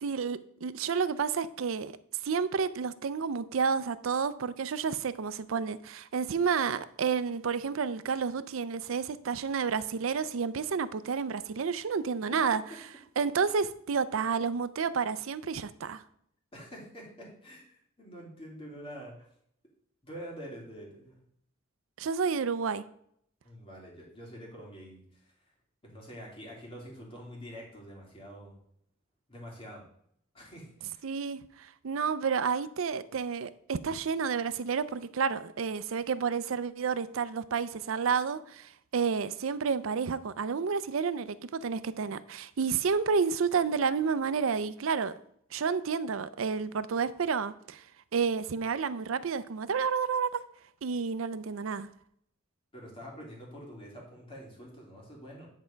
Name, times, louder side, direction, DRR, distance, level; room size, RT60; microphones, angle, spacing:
voice 1, 0.0-1.9 2.2-12.6 13.2-16.0 22.0-22.8 31.0-45.1 45.5-47.8 48.1-50.4 50.8-51.9, right 5 dB, 75° right, 0.5 m, -30 dB
voice 2, 16.5-19.3 20.0-21.2 23.4-25.3 25.8-28.5 29.3-29.8 30.3-31.1 52.7-55.5, equal, 25° left, 2.8 m, -46 dB
9.4 x 4.5 x 5.1 m
head